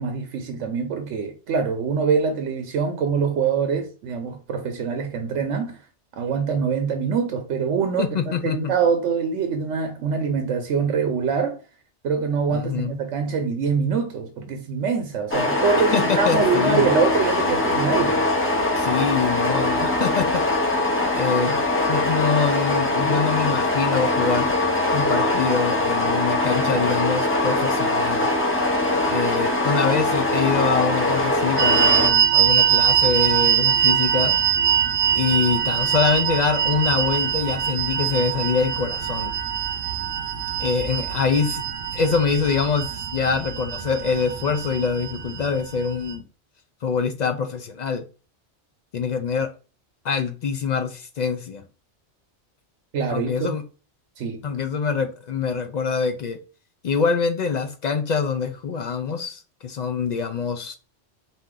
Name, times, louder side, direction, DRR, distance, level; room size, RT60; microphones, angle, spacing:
voice 1, 0.0-5.8 6.1-11.6 12.0-18.2 52.9-53.5 54.2-54.4, right 5 dB, 90° right, 1.0 m, -24 dB
voice 2, 8.0-8.7 12.5-12.9 15.9-16.9 18.8-20.4 21.1-21.6 21.9-24.5 24.9-28.3 29.1-34.4 35.1-39.3 40.6-41.6 41.9-46.2 46.8-48.0 48.9-49.5 50.0-51.6 53.1-53.6 54.4-56.4 56.8-60.7, left 5 dB, 65° left, 0.4 m, -24 dB
sound 1, 15.3-32.1, left 2 dB, 15° left, 0.6 m, -22 dB
sound 2, 31.6-46.1, right 9 dB, 60° right, 0.7 m, -23 dB
4.2 x 2.5 x 3.7 m
omnidirectional pair, 1.2 m